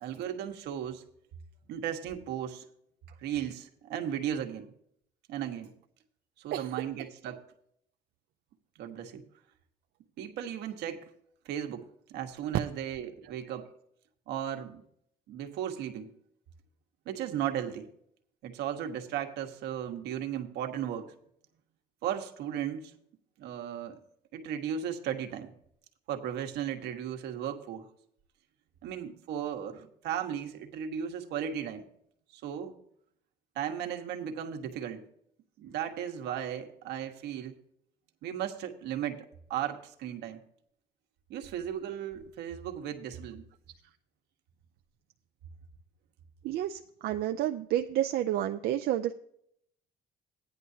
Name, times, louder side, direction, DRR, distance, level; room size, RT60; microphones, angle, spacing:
voice 1, 0.0-1.0 1.7-2.6 3.2-4.7 5.3-5.7 6.4-7.4 8.7-9.3 10.2-11.0 11.4-13.7 14.3-14.8 15.3-16.1 17.0-17.9 18.4-21.1 22.0-22.9 23.4-24.0 24.3-25.5 26.1-27.9 28.8-31.9 32.3-32.7 33.5-35.1 35.6-37.6 38.2-40.4 41.3-43.5, right 9 dB, 85° right, 5 dB, 1.3 m, -36 dB
voice 2, 46.4-49.1, right 12 dB, 70° right, 6 dB, 0.5 m, -30 dB
15.0 x 10.0 x 2.8 m, 0.68 s
cardioid pair, 110°, 17 cm